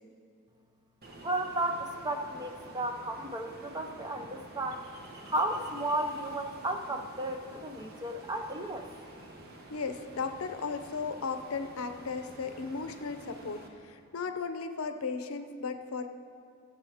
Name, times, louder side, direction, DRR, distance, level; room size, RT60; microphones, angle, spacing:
Ocean, 1.0-13.7, right 1 dB, 45° right, 1.1 m, -50 dB
voice 1, 1.2-4.9 5.3-8.9, right 1 dB, 20° right, 4 dB, 0.6 m, -33 dB
voice 2, 9.7-16.1, left 4 dB, 75° left, 8 dB, 0.6 m, -36 dB
16.5 x 7.6 x 3.5 m, 2.3 s
head